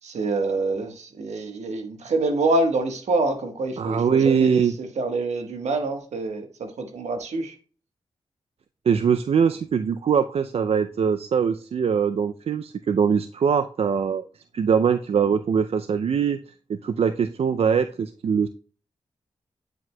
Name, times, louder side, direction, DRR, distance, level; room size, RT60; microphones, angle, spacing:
voice 1, 0.0-7.5, right 2 dB, 75° right, 5 dB, 1.3 m, -26 dB
voice 2, 3.8-4.7 8.9-14.2 14.5-16.4 16.7-18.5, right 7 dB, 60° right, 10 dB, 0.4 m, -22 dB
9.1 x 4.8 x 2.2 m, 0.40 s
cardioid pair, 45°, 12 cm